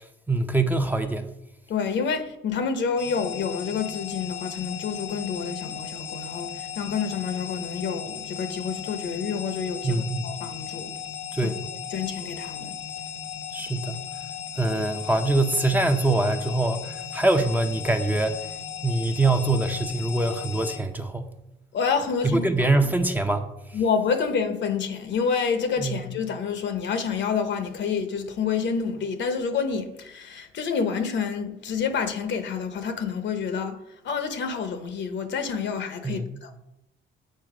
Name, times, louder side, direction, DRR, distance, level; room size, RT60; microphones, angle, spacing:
voice 1, 0.3-1.3 9.8-10.3 11.3-11.6 13.5-14.0 14.6-18.4 18.8-21.3 22.2-23.5 25.8-26.0 36.0-36.4, right 2 dB, 10° right, 0.6 m, -24 dB
voice 2, 1.7-10.9 11.4-11.5 11.9-12.8 21.7-22.7 23.7-33.8 34.0-36.5, left 6 dB, 65° left, 0.9 m, -28 dB
sound 1, 3.0-20.8, left 8 dB, 85° left, 1.4 m, -36 dB
7.6 x 4.4 x 4.9 m
cardioid pair, 90°, 20 cm